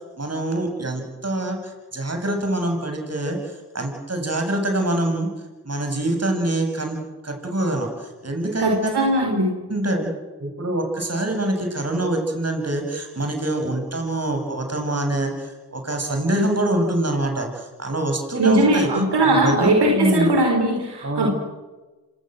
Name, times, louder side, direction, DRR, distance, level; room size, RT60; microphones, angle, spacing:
voice 1, 0.2-5.3 5.6-9.0 9.7-10.1 10.4-18.9 19.3-20.3 21.0-21.3, right 1 dB, 40° right, 4 dB, 7.8 m, -25 dB
voice 2, 8.6-9.5 18.4-21.3, right 1 dB, 75° right, 2 dB, 5.1 m, -19 dB
26.5 x 19.5 x 7.9 m, 1.2 s
cardioid pair, 45°, 40 cm